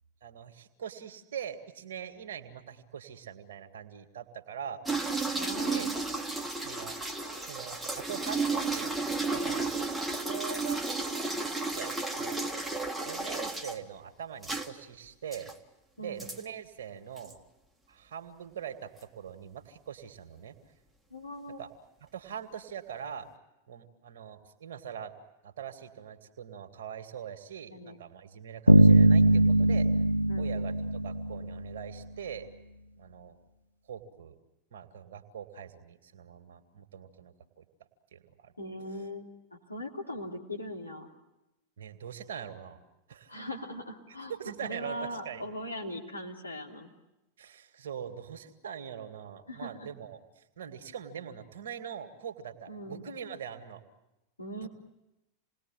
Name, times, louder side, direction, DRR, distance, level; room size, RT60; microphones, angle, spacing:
voice 1, 0.2-4.8 5.7-5.9 6.5-7.0 7.4-8.9 9.2-9.7 10.1-10.8 11.7-12.4 13.0-15.5 16.0-17.4 17.9-20.5 21.6-21.7 22.0-23.3 23.7-25.1 25.4-29.9 30.4-32.5 33.0-33.4 33.9-34.4 34.7-37.6 38.1-38.5 41.8-42.8 43.1-43.4 44.1-45.4 47.4-53.8 54.6-54.7, right 8 dB, 60° right, 7 dB, 2.2 m, -42 dB
sound 1, 4.9-13.8 14.4-14.7 15.3-15.5 16.2-16.4 17.2-17.3, right 3 dB, 5° right, 1.8 m, -33 dB
voice 2, 5.4-6.0 16.0-16.2 21.1-21.6 27.7-28.0 30.3-30.5 38.6-39.3 39.7-41.1 43.3-46.9 49.5-49.9 52.7-53.0 54.4-54.7, equal, 80° left, 1 dB, 3.0 m, -40 dB
Bass guitar, 28.7-31.8, right 1 dB, 90° right, 0.9 m, -21 dB
28.0 x 20.0 x 9.1 m, 0.96 s
figure-of-eight pair, 90°, 0 cm